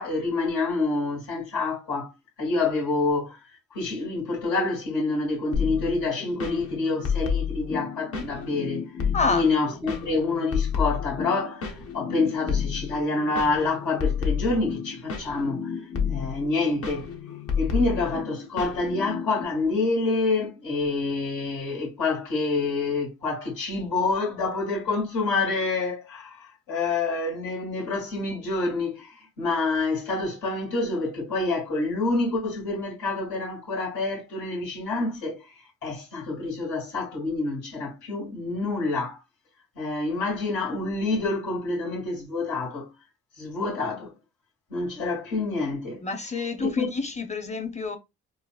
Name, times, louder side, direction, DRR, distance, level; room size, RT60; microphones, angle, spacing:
voice 1, 0.0-2.1 2.4-3.4 3.7-8.9 9.3-15.7 16.1-17.1 17.6-35.4 35.8-39.2 39.8-42.9 43.4-44.1 44.7-46.0 46.6-46.9, left 3 dB, 90° left, 1.8 m, -27 dB
sound 1, 5.5-19.4, left 6 dB, 50° left, 0.8 m, -31 dB
voice 2, 9.1-9.5 46.0-48.0, left 4 dB, 25° left, 0.7 m, -28 dB
3.9 x 2.5 x 2.3 m
cardioid pair, 90°, 30 cm